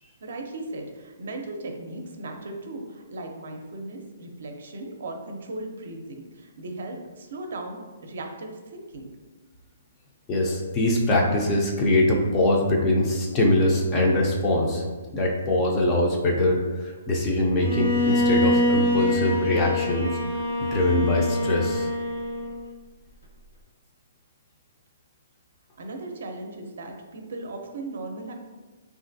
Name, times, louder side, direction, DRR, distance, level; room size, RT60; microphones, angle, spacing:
voice 1, 0.2-9.1 25.8-28.4, right 2 dB, 70° right, 3 dB, 0.5 m, -37 dB
voice 2, 10.3-14.8 15.1-20.2 20.6-21.9, left 1 dB, 20° left, -1 dB, 0.4 m, -23 dB
Bowed string instrument, 17.6-22.6, left 1 dB, 75° left, 1.0 m, -25 dB
3.1 x 2.4 x 2.6 m, 1.3 s
hypercardioid pair, 160°, 0 cm